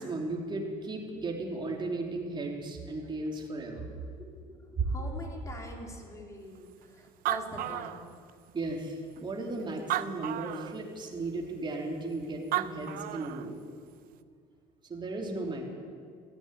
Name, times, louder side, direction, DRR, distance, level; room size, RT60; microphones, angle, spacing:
voice 1, 0.0-3.9 8.5-13.5 14.9-15.7, right 2 dB, 30° right, 0 dB, 3.2 m, -35 dB
voice 2, 4.2-8.0, left 1 dB, 20° left, 0 dB, 3.5 m, -43 dB
Animal, 6.8-6.9 7.1-8.5 9.2-9.3 9.8-10.8 12.2-12.3 12.5-13.5, right 14 dB, 65° right, 0.7 m, -33 dB
15.5 x 9.1 x 10.0 m, 2.1 s
supercardioid pair, 90°, 16 cm